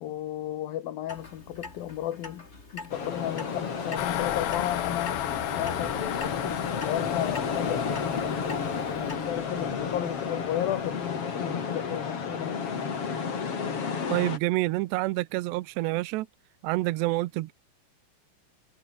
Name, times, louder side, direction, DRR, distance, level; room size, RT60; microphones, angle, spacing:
voice 1, 0.0-2.5 2.7-8.4 8.9-12.8, left 12 dB, 60° left, 3.1 m, -34 dB
Clock, 1.1-9.2, left 3 dB, 20° left, 2.5 m, -44 dB
sound 1, 2.9-14.4, left 6 dB, 35° left, 3.3 m, -32 dB
sound 2, 4.0-11.0, left 15 dB, 85° left, 3.6 m, -36 dB
voice 2, 14.1-16.3 16.6-17.5, right 19 dB, 80° right, 2.9 m, -27 dB
omnidirectional pair, 5.2 m